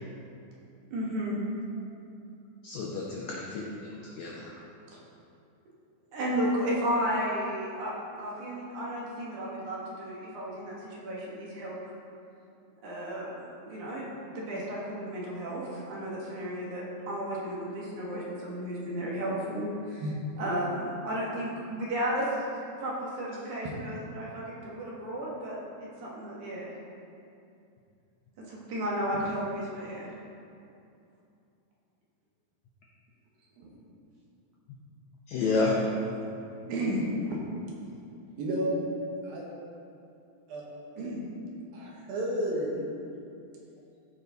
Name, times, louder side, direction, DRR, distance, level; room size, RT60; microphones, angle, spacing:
voice 1, 0.9-1.4 6.1-11.9 12.8-20.0 20.4-22.3 22.8-26.7 28.5-30.1, equal, 60° right, -5 dB, 2.7 m, -33 dB
voice 2, 2.6-4.5 35.3-35.8, left 3 dB, 80° left, -2 dB, 1.6 m, -30 dB
voice 3, 36.7-37.4 38.4-38.9 39.2-39.5 40.5-40.6 41.0-41.3 41.7-42.9, equal, 80° right, -3 dB, 3.1 m, -31 dB
14.0 x 5.0 x 4.0 m, 2.6 s
omnidirectional pair, 4.3 m